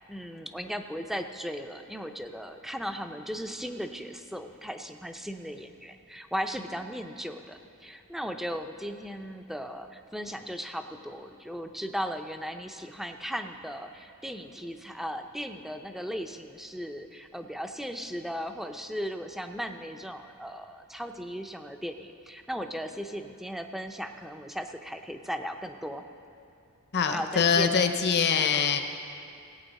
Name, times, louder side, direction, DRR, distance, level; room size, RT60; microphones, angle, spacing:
voice 1, 0.0-26.0 27.1-27.8, equal, ahead, 6 dB, 0.5 m, -37 dB
voice 2, 26.9-28.8, left 6 dB, 50° left, 7 dB, 0.7 m, -24 dB
18.0 x 8.4 x 4.1 m, 2.6 s
head